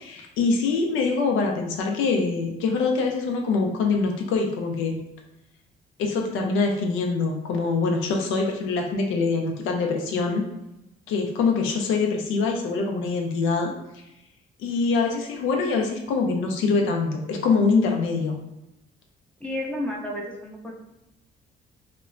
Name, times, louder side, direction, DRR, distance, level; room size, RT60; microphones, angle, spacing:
voice 1, 0.0-5.0 6.0-10.4 11.1-13.7 14.6-18.3, left 4 dB, 85° left, 2 dB, 0.5 m, -24 dB
voice 2, 19.4-20.7, left 1 dB, 5° left, -3 dB, 0.5 m, -31 dB
2.9 x 2.1 x 2.4 m, 0.88 s
cardioid pair, 90°, 20 cm